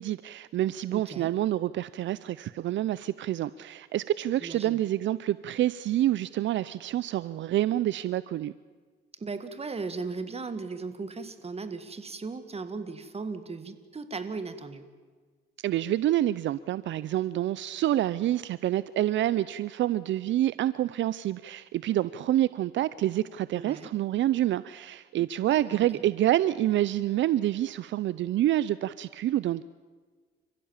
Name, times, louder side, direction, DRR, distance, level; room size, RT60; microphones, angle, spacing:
voice 1, 0.0-8.5 15.6-29.6, right 13 dB, 70° right, 17 dB, 0.6 m, -27 dB
voice 2, 0.9-1.3 4.4-4.8 9.2-14.9 23.5-23.9 25.5-26.0, right 4 dB, 30° right, 10 dB, 2.1 m, -37 dB
30.0 x 15.5 x 7.3 m, 1.5 s
cardioid pair, 90°, 20 cm